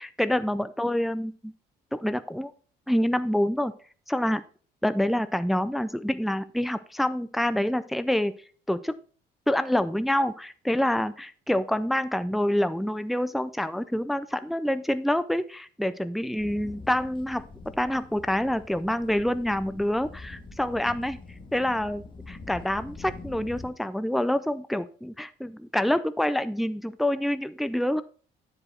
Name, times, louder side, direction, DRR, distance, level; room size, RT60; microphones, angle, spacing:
voice 1, 0.0-1.5 1.9-2.5 2.9-3.7 4.1-4.4 4.8-8.3 8.7-9.0 9.5-17.4 17.8-21.2 21.5-28.0, left 1 dB, ahead, 13 dB, 0.4 m, -27 dB
sound 1, 16.4-23.7, left 3 dB, 30° left, 1.5 m, -44 dB
9.7 x 5.0 x 4.4 m, 0.41 s
cardioid pair, 110°, 17 cm